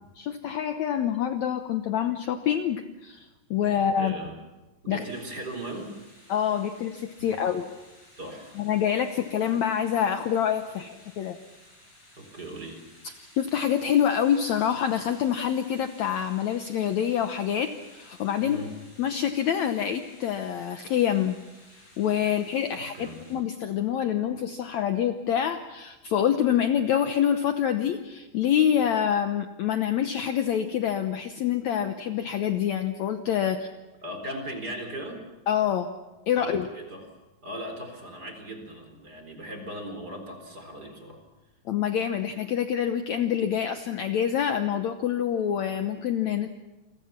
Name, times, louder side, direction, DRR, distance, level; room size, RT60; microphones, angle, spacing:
voice 1, 0.2-4.2 4.9-5.0 6.3-7.7 8.6-11.4 13.4-18.6 19.0-21.4 21.7-33.7 35.5-35.9 36.3-36.7 41.7-46.5, left 9 dB, 70° left, 7 dB, 1.9 m, -26 dB
voice 2, 4.0-4.4 4.8-6.0 7.2-7.3 8.2-8.6 12.2-12.9 18.4-18.8 22.7-23.2 34.0-35.3 36.3-37.2 37.4-41.2, right 1 dB, 25° right, 4 dB, 4.5 m, -38 dB
sound 1, 5.0-23.4, left 1 dB, 30° left, 8.4 m, -55 dB
29.5 x 23.0 x 5.9 m, 1.1 s
omnidirectional pair, 4.1 m